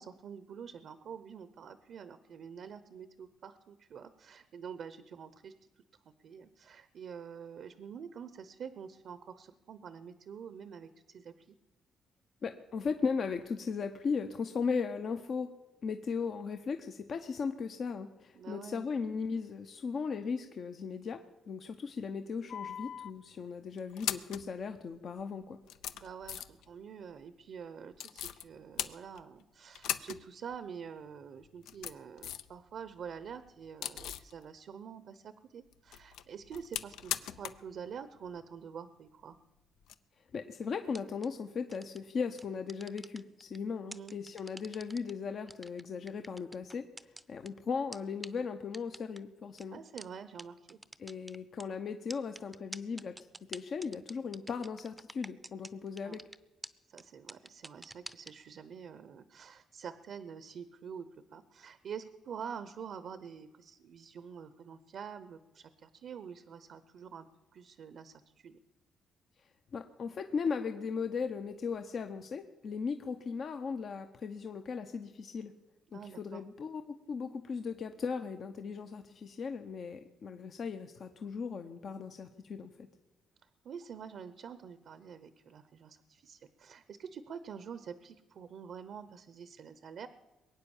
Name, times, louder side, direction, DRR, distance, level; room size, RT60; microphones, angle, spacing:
voice 1, 0.0-5.7 6.2-11.6 18.3-18.9 25.9-39.4 43.9-44.1 49.7-50.8 56.0-56.2 56.9-61.1 61.3-68.6 75.9-76.4 83.6-90.1, right 7 dB, 65° right, 13 dB, 0.8 m, -47 dB
voice 2, 12.4-15.5 15.8-25.6 40.3-46.8 47.3-49.8 51.0-53.2 53.5-56.2 69.7-75.5 75.9-82.9, left 5 dB, 55° left, 7 dB, 0.8 m, -37 dB
sound 1, 22.5-23.1 23.8-24.5 25.2-25.3 25.6-26.7 28.0-28.4 28.8-29.4 29.7-30.2 30.5-30.6 31.4-32.5 32.9-34.3 35.7-37.7 37.9-38.0 39.8-39.9, left 10 dB, 85° left, 0.6 m, -39 dB
sound 2, 40.9-41.3 41.7-42.0 42.4-43.6 43.9-45.1 45.5-47.5 47.9-48.0 48.2-48.3 48.7-49.2 49.6-49.7 50.0-50.1 50.4-50.5 50.7-51.6 52.1-55.7 56.0-56.4 56.6-56.7 57.0-57.1 57.3-58.3, right 1 dB, 10° right, 0.6 m, -46 dB
22.0 x 9.0 x 7.2 m, 1.1 s
cardioid pair, 90°, 0 cm